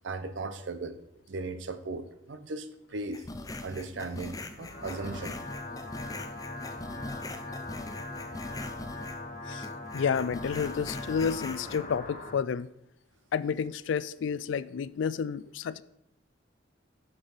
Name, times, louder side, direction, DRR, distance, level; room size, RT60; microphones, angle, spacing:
voice 1, 0.0-1.0 1.3-3.3 3.6-5.4 6.9-7.1 8.2-8.4, right 3 dB, 80° right, 0.6 m, -37 dB
sound 1, 3.1-9.3 9.6-11.8, left 2 dB, 20° left, 0.5 m, -42 dB
sound 2, 4.4-12.4, left 2 dB, 40° left, 1.0 m, -40 dB
voice 2, 9.9-12.7 13.3-15.8, left 6 dB, 80° left, 0.3 m, -30 dB
6.8 x 6.7 x 4.1 m
head